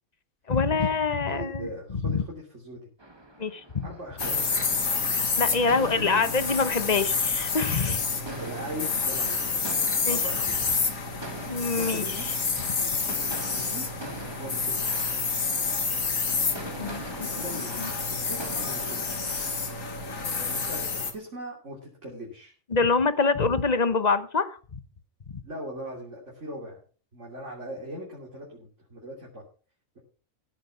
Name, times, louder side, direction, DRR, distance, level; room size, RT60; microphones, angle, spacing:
voice 1, 0.5-2.2 3.4-3.9 5.4-8.0 10.0-10.2 11.5-12.0 16.8-17.0 17.8-17.9 22.7-24.8, left 4 dB, 30° left, 12 dB, 1.1 m, -25 dB
voice 2, 1.3-2.8 3.8-4.5 5.8-6.3 8.4-9.6 10.1-10.6 11.8-12.2 13.6-13.9 14.4-15.1 17.2-17.8 18.1-19.2 20.5-22.5 25.4-26.8 27.1-29.4, equal, 55° right, -2 dB, 3.4 m, -39 dB
sound 1, 3.0-20.2, right 2 dB, 20° right, 1.7 m, -44 dB
sound 2, 4.2-21.1, left 4 dB, 70° left, 2.2 m, -29 dB
16.0 x 7.5 x 5.7 m, 0.39 s
omnidirectional pair, 1.5 m